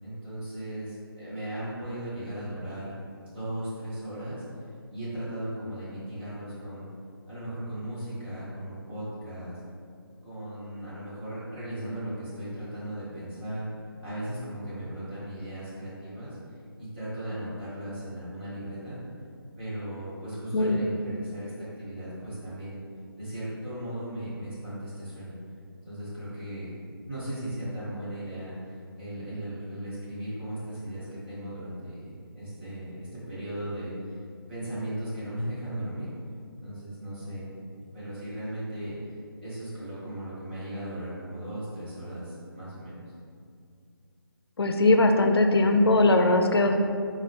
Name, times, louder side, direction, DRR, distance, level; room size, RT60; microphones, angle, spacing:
voice 1, 0.0-2.9 3.2-4.4 4.9-6.9 7.3-9.6 10.2-13.7 14.0-16.4 16.8-19.0 19.6-22.8 23.2-25.4 25.8-26.7 27.0-34.1 34.5-36.1 36.6-37.5 37.8-39.0 39.4-43.0, right 1 dB, 25° right, -11 dB, 1.5 m, -37 dB
voice 2, 44.6-46.8, left 2 dB, 85° left, 5 dB, 0.5 m, -20 dB
4.0 x 3.8 x 3.2 m, 2.3 s
figure-of-eight pair, 165°, 13 cm